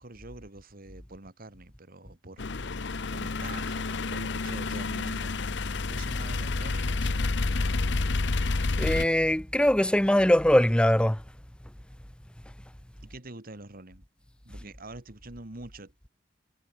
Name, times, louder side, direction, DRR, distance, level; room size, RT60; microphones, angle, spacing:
voice 1, 0.0-7.8 13.0-14.0 14.4-16.1, right 2 dB, 50° right, 2.2 m, -46 dB
sound 1, 2.4-9.1, left 3 dB, 65° left, 0.9 m, -29 dB
voice 2, 8.8-11.2, left 1 dB, 5° left, 0.8 m, -22 dB
head